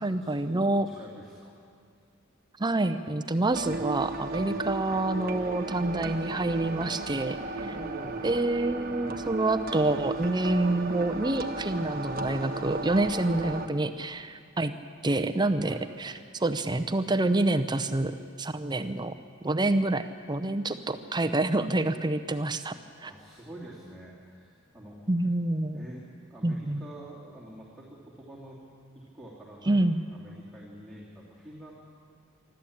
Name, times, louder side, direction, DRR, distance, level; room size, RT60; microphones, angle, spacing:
voice 1, 0.0-0.9 2.6-7.7 8.2-14.7 15.0-18.1 18.4-19.1 19.4-22.8 23.0-23.1 25.1-25.9 26.4-26.8 29.7-30.0, right 2 dB, 20° right, 10 dB, 0.7 m, -27 dB
voice 2, 0.7-1.5 4.4-4.6 7.6-8.5 9.0-9.2 15.6-15.9 23.0-25.0 25.7-26.0 26.3-28.6 28.9-31.7, right 1 dB, ahead, -7 dB, 2.9 m, -46 dB
sound 1, 3.5-13.7, right 2 dB, 45° right, 1.2 m, -35 dB
25.0 x 13.0 x 8.7 m, 2.3 s
head